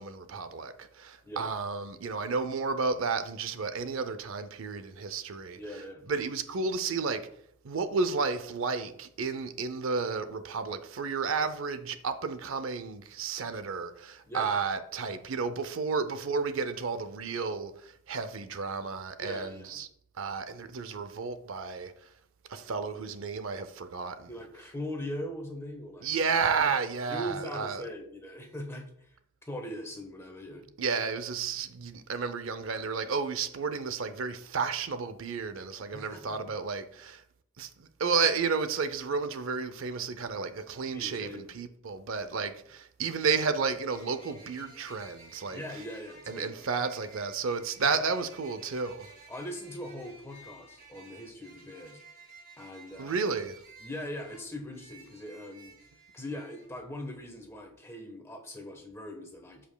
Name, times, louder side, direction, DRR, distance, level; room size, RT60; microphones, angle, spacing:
voice 1, 0.0-5.6 6.1-7.2 7.6-19.9 20.2-21.9 22.5-24.3 26.0-27.8 30.8-37.2 37.6-45.6 46.3-49.1 53.0-53.6, right 5 dB, 65° right, 0.5 m, -32 dB
voice 2, 5.6-6.0 14.3-14.5 19.2-19.8 24.3-26.1 26.6-26.7 27.1-29.2 29.5-30.6 35.9-36.4 40.9-41.6 45.4-46.7 49.3-52.0 52.6-53.2 53.8-55.7 56.1-59.6, equal, 10° left, 1.0 m, -41 dB
sound 1, 43.9-56.7, right 3 dB, 40° right, 2.4 m, -54 dB
13.0 x 5.1 x 2.2 m
head